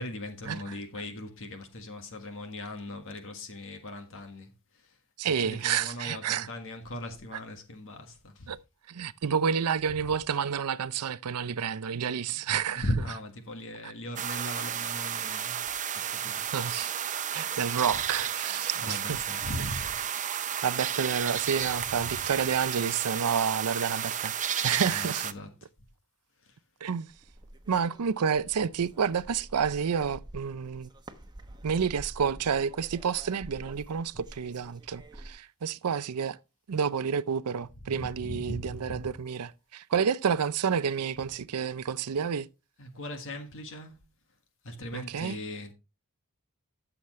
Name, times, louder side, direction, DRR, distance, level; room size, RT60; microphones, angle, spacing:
voice 1, 0.0-8.5 9.9-10.1 12.2-15.6 15.9-16.5 18.5-20.0 21.8-22.3 24.9-25.7 26.4-26.6 37.8-39.2 42.8-44.0 44.6-45.7, left 1 dB, 60° left, 1.6 m, -39 dB
voice 2, 5.2-6.5 8.5-8.6 8.9-12.8 16.5-16.9 17.3-19.2 20.6-24.3 24.6-25.2 26.8-27.1 27.7-30.9 31.6-36.4 36.7-42.5 44.9-45.4, right 7 dB, 85° right, 0.5 m, -29 dB
sound 1, 14.2-25.3, right 9 dB, 35° right, 0.6 m, -32 dB
sound 2, 27.1-35.4, right 1 dB, 20° right, 1.1 m, -48 dB
13.0 x 7.2 x 3.1 m
head